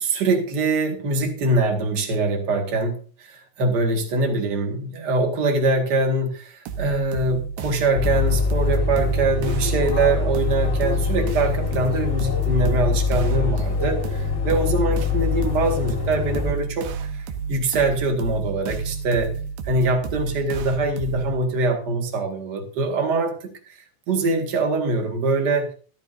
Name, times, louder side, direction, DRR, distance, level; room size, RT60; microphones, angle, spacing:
voice 1, 0.0-3.0 3.3-16.9 17.5-19.3 19.6-23.5 24.1-25.7, right 2 dB, 45° right, 3 dB, 1.4 m, -23 dB
sound 1, 6.7-21.4, right 6 dB, 85° right, 3.4 m, -31 dB
sound 2, 7.9-16.5, left 4 dB, 45° left, 0.8 m, -24 dB
14.0 x 13.5 x 2.7 m, 0.40 s
omnidirectional pair, 4.9 m